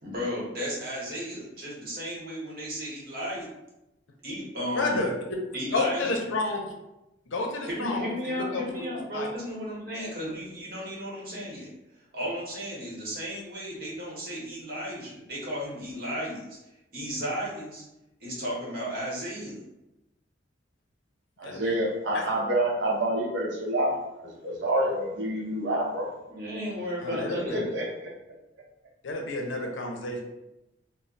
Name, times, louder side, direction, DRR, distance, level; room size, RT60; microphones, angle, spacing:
voice 1, 0.0-3.5 4.2-5.1 5.5-6.3 7.7-11.7 12.1-16.5 16.9-17.8 18.2-19.6 26.3-27.7, equal, 50° right, -5 dB, 0.9 m, -34 dB
voice 2, 4.7-5.1 5.7-6.6 7.3-8.8 9.1-9.3 21.4-21.7 22.1-22.2 27.0-27.3 29.0-30.2, left 2 dB, 75° left, 2 dB, 0.5 m, -30 dB
voice 3, 21.4-26.1 27.1-27.9, right 1 dB, 70° right, -1 dB, 0.6 m, -28 dB
2.2 x 2.0 x 3.8 m, 0.94 s
head